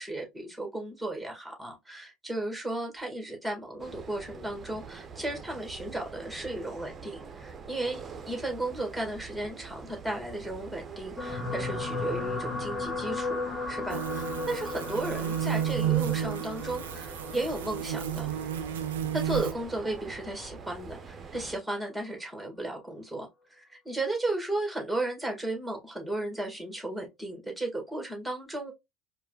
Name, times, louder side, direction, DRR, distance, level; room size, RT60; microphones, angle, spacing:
voice 1, 0.0-18.3 19.1-28.7, right 2 dB, ahead, 1.8 m, -35 dB
sound 1, 3.8-21.6, right 5 dB, 30° right, 0.7 m, -45 dB
sound 2, 11.2-19.6 20.4-20.6 20.9-21.0, left 3 dB, 20° left, 1.4 m, -36 dB
sound 3, 13.9-19.5, right 10 dB, 80° right, 0.5 m, -32 dB
4.5 x 2.3 x 2.3 m
hypercardioid pair, 70°, 0 cm